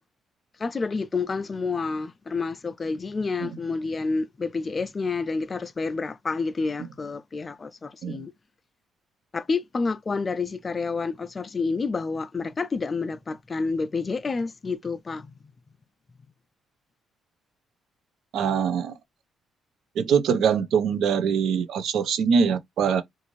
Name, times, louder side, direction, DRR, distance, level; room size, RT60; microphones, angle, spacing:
voice 1, 0.6-8.3 9.3-15.3, left 4 dB, 30° left, 0.3 m, -29 dB
voice 2, 18.3-18.9 20.0-23.0, right 6 dB, 75° right, 0.5 m, -23 dB
2.5 x 2.4 x 3.0 m
cardioid pair, 90°, 0 cm